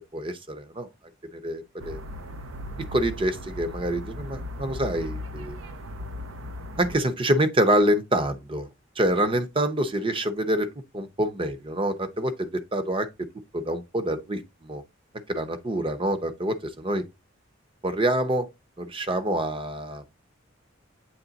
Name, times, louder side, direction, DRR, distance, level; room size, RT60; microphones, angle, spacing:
voice 1, 0.1-0.9 1.3-2.0 2.9-5.6 6.8-8.7 9.0-10.7 10.9-13.1 13.5-14.8 15.3-17.0 17.8-18.5 18.8-20.0, right 1 dB, 25° right, 0.7 m, -26 dB
sound 1, 1.8-7.0, left 1 dB, 85° right, 0.8 m, -37 dB
8.0 x 3.3 x 3.9 m
head